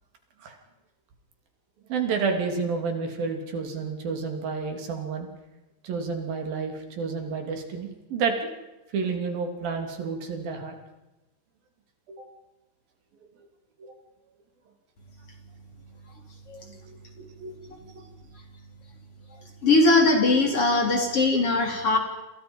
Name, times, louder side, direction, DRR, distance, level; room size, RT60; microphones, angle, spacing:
voice 1, 1.9-5.3 5.8-8.4 8.9-10.8 12.1-12.2 13.8-13.9 16.9-17.0 17.4-17.5 17.9-18.0, right 5 dB, 70° right, 4 dB, 4.7 m, -30 dB
voice 2, 19.6-22.0, left 2 dB, 40° left, 3 dB, 4.2 m, -21 dB
28.5 x 28.0 x 5.5 m, 1.0 s
omnidirectional pair, 4.4 m